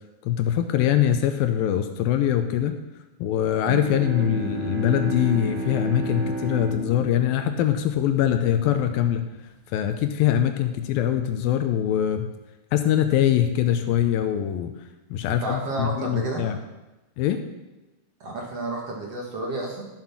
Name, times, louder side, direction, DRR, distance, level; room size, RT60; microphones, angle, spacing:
voice 1, 0.2-2.8 3.2-9.3 9.7-12.3 12.7-14.7 15.1-16.6 17.2-17.4, left 10 dB, 80° left, 8 dB, 2.4 m, -23 dB
Bowed string instrument, 3.4-8.8, right 3 dB, 75° right, 0.6 m, -33 dB
voice 2, 15.4-16.5 18.2-19.9, right 2 dB, 50° right, -1 dB, 2.3 m, -31 dB
13.5 x 7.6 x 6.0 m, 1.0 s
omnidirectional pair, 4.4 m